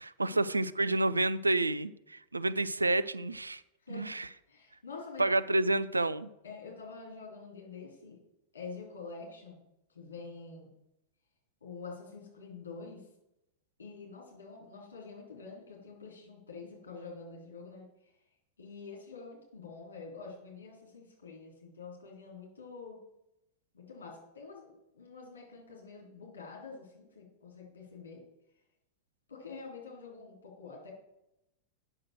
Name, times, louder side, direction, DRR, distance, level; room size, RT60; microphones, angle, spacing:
voice 1, 0.0-3.6 3.9-4.3 5.2-6.3, right 2 dB, 80° right, 0.4 m, -29 dB
voice 2, 4.5-5.3 6.4-8.2 8.5-9.6 9.9-10.7 11.6-13.0 13.8-17.9 18.6-23.0 23.7-28.2 29.3-30.9, left 4 dB, 70° left, 3.4 m, -47 dB
8.6 x 6.4 x 6.4 m
figure-of-eight pair, 90°, 0 cm